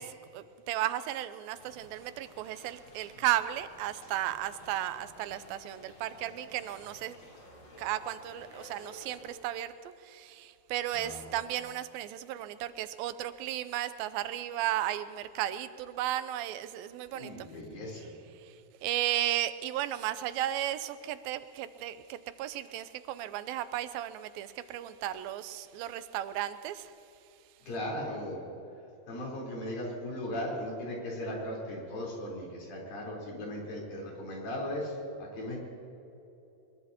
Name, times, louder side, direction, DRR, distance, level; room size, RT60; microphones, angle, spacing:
voice 1, 0.0-7.2 7.8-17.5 18.3-26.9, right 13 dB, 90° right, 13 dB, 2.5 m, -34 dB
sound 1, 1.5-9.3, left 1 dB, 50° left, 5.5 m, -53 dB
voice 2, 10.9-11.4 17.1-18.1 27.6-28.4 29.1-35.6, left 1 dB, 80° left, -3 dB, 5.8 m, -37 dB
22.5 x 22.0 x 2.9 m, 2.9 s
omnidirectional pair, 4.1 m